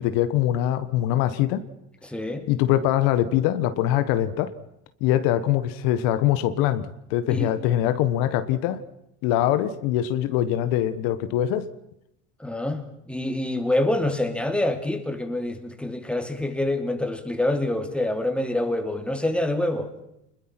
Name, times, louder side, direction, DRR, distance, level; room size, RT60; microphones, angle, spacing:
voice 1, 0.0-1.6 2.5-4.5 5.0-8.8 9.2-11.7, left 12 dB, 70° left, 12 dB, 1.4 m, -23 dB
voice 2, 2.0-2.5 7.3-7.5 12.4-19.9, left 1 dB, 5° left, 7 dB, 2.8 m, -26 dB
26.0 x 21.0 x 6.0 m, 0.81 s
supercardioid pair, 100°, 36 cm